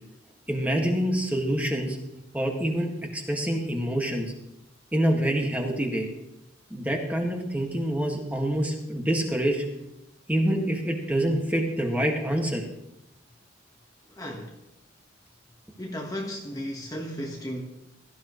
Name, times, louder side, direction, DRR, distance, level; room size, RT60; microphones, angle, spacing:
voice 1, 0.5-2.0 2.3-4.3 4.9-6.1 6.7-9.6 10.3-12.6, right 1 dB, 5° right, 1 dB, 1.8 m, -26 dB
voice 2, 14.1-14.5 15.8-17.6, equal, 15° left, 0 dB, 1.3 m, -34 dB
17.5 x 13.5 x 3.1 m, 0.87 s
head